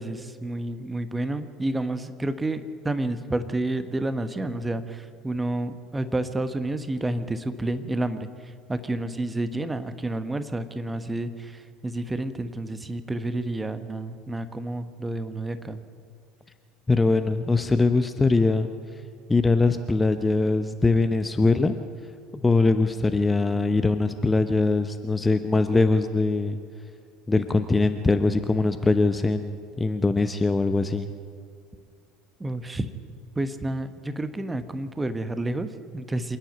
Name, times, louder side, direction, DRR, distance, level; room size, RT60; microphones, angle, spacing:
voice 1, 0.0-15.8 32.4-32.9 33.3-36.4, right 1 dB, 15° right, 11 dB, 1.3 m, -30 dB
voice 2, 16.9-18.7 19.3-21.8 22.3-26.6 27.3-31.1, left 3 dB, 15° left, 9 dB, 0.8 m, -22 dB
26.5 x 10.5 x 9.4 m, 2.1 s
figure-of-eight pair, 65°, 0 cm